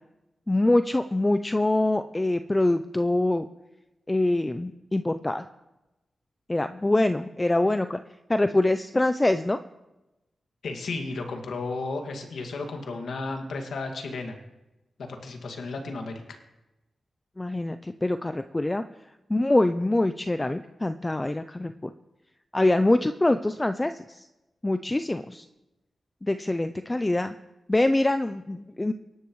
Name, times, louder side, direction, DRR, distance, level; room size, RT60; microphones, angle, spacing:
voice 1, 0.5-3.5 4.1-5.5 6.5-8.0 8.3-9.6 17.4-18.8 19.3-21.9 22.5-24.3 24.6-25.4 26.2-27.3 27.7-28.9, left 2 dB, 15° left, 9 dB, 0.4 m, -24 dB
voice 2, 10.6-14.4 15.0-16.4, left 3 dB, 90° left, 3 dB, 2.1 m, -33 dB
25.0 x 12.0 x 3.1 m, 1.0 s
wide cardioid pair, 130°, 0 cm